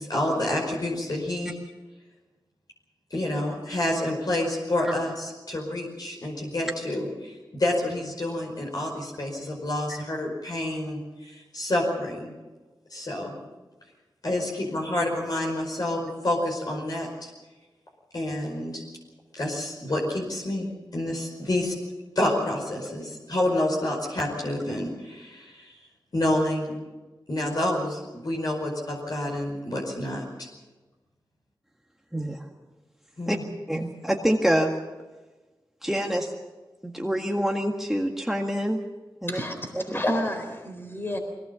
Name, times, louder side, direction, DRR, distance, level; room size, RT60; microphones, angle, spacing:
voice 1, 0.0-1.5 3.1-12.3 12.9-13.4 14.2-16.0 16.2-17.3 18.1-18.8 19.3-21.7 22.2-25.8 26.1-26.8 27.3-30.5 33.2-33.4, left 1 dB, 55° left, -1 dB, 5.2 m, -28 dB
voice 2, 32.1-32.4 33.3-33.4 33.7-34.7 35.8-36.3 36.8-38.8 39.2-39.4 39.7-40.0, equal, 5° right, 1 dB, 1.9 m, -26 dB
voice 3, 39.3-41.2, left 1 dB, 30° left, 4 dB, 4.0 m, -30 dB
22.0 x 18.0 x 7.2 m, 1.2 s
wide cardioid pair, 65°, 8 cm